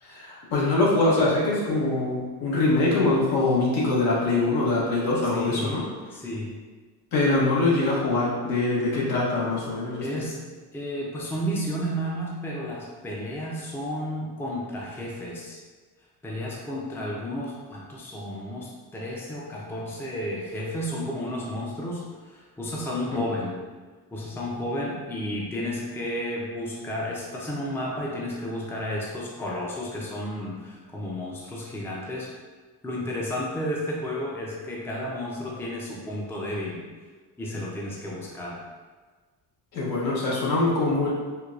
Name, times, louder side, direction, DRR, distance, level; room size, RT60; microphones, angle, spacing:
voice 1, 0.0-5.8 7.1-10.3 23.1-23.2 39.7-41.1, left 2 dB, 70° left, -6 dB, 1.2 m, -23 dB
voice 2, 5.3-5.7 6.1-6.5 10.0-10.4 10.7-15.6 16.2-23.6 24.1-32.3 32.8-36.8 37.4-38.6, equal, 5° left, -4 dB, 0.5 m, -32 dB
4.5 x 2.2 x 2.4 m, 1.4 s
cardioid pair, 115°, 37 cm